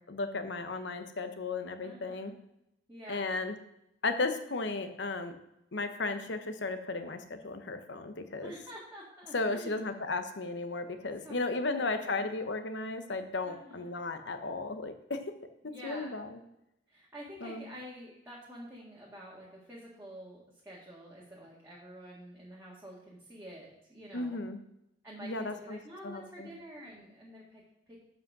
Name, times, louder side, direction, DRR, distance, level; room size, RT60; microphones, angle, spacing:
voice 1, 0.1-2.3 3.1-3.5 4.0-5.4 5.7-8.5 9.3-15.2 15.8-16.4 17.4-17.6 24.1-24.6 25.2-25.8 26.0-26.5, left 3 dB, 70° left, 8 dB, 0.9 m, -35 dB
voice 2, 1.8-2.3 2.9-3.3 8.4-9.8 11.2-12.2 13.4-13.9 15.6-16.2 16.9-24.4 25.0-28.0, equal, 15° right, -7 dB, 1.7 m, -48 dB
7.9 x 5.3 x 6.0 m, 0.83 s
head